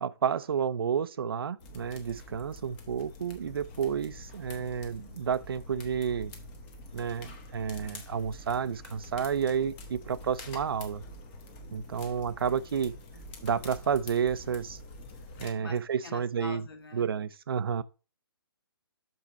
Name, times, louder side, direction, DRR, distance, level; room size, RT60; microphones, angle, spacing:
voice 1, 0.0-6.3 6.9-11.0 11.7-12.9 13.4-14.8 15.4-16.6 16.9-17.8, right 7 dB, 70° right, 0.5 m, -31 dB
sound 1, 1.6-15.5, left 2 dB, 20° left, 1.0 m, -46 dB
voice 2, 12.4-13.2 15.6-15.8 16.0-17.1, left 3 dB, 70° left, 1.9 m, -46 dB
6.5 x 5.2 x 4.0 m
hypercardioid pair, 160°, 13 cm